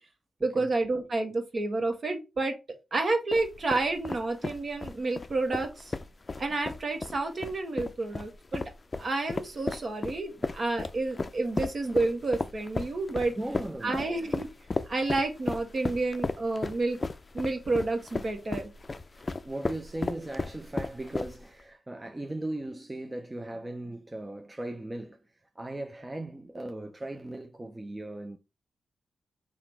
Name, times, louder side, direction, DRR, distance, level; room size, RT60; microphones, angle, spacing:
voice 1, 0.4-2.5 2.9-5.9 6.4-8.6 9.0-13.3 13.8-14.5 14.9-17.0 17.3-18.7, right 2 dB, 50° right, 1.2 m, -30 dB
sound 1, 3.3-21.6, left 3 dB, 40° left, 0.4 m, -35 dB
voice 2, 13.4-14.0 19.1-28.4, right 1 dB, 25° right, 0.6 m, -38 dB
3.8 x 2.5 x 4.5 m
supercardioid pair, 50°, 0 cm